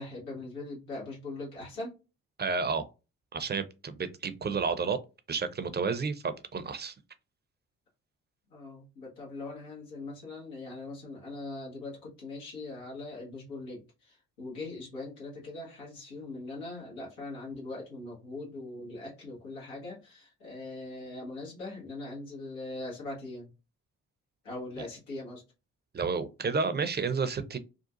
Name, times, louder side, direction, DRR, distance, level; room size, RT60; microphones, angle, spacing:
voice 1, 0.0-1.9 8.5-23.5 24.4-25.4, left 2 dB, 90° left, 1.4 m, -41 dB
voice 2, 2.4-2.8 3.3-5.0 5.3-6.9 25.9-27.6, right 5 dB, 25° right, 0.6 m, -31 dB
3.7 x 2.4 x 2.5 m
hypercardioid pair, 45°, 37 cm